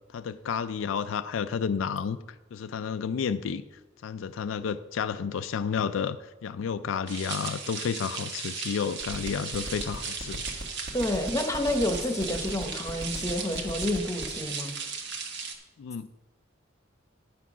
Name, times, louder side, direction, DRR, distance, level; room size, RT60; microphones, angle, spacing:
voice 1, 0.1-2.2 2.5-3.6 4.0-10.4 15.8-16.1, left 6 dB, 75° left, 11 dB, 0.4 m, -31 dB
sound 1, 7.1-15.5, right 5 dB, 60° right, 1.3 m, -36 dB
sound 2, 9.0-14.4, equal, 45° right, 1.3 m, -36 dB
voice 2, 10.9-14.7, left 1 dB, 15° left, 5 dB, 1.0 m, -29 dB
10.0 x 6.0 x 6.1 m, 1.1 s
head